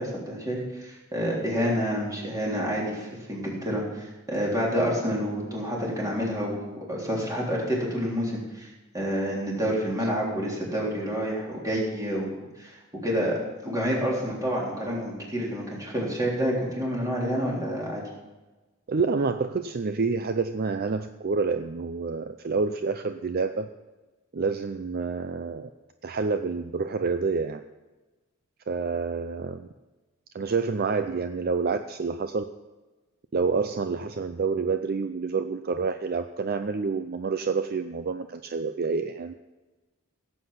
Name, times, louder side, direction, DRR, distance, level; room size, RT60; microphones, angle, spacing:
voice 1, 0.0-8.7 8.9-12.3 12.6-18.0, equal, 15° right, -4 dB, 3.5 m, -28 dB
voice 2, 18.9-23.7 24.3-25.7 26.0-27.6 28.7-29.7 30.3-32.4 33.3-39.3, right 4 dB, 45° right, 9 dB, 0.5 m, -28 dB
16.5 x 7.9 x 5.7 m, 1.1 s
head